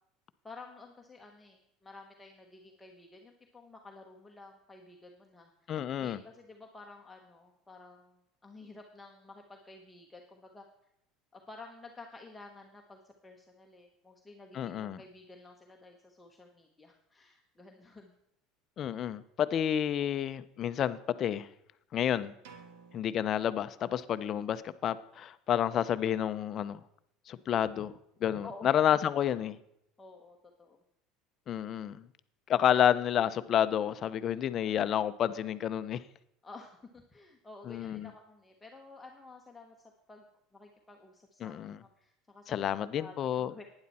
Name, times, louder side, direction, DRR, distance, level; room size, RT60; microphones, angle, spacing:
voice 1, 0.4-10.6 11.3-18.1 27.3-27.5 28.4-28.7 29.2-29.3 30.0-30.8 36.4-39.8 40.1-40.2 40.5-43.6, left 3 dB, 10° left, 1.1 m, -52 dB
voice 2, 5.7-6.2 14.5-15.0 18.8-21.5 21.9-22.3 22.9-26.8 27.3-27.9 28.2-29.5 31.5-32.0 32.5-36.0 37.7-38.1 41.4-41.8 42.5-43.5, left 10 dB, 40° left, 0.6 m, -30 dB
sound 1, 22.4-24.3, right 5 dB, 80° right, 1.5 m, -56 dB
11.5 x 9.7 x 4.2 m
supercardioid pair, 130°, 0 cm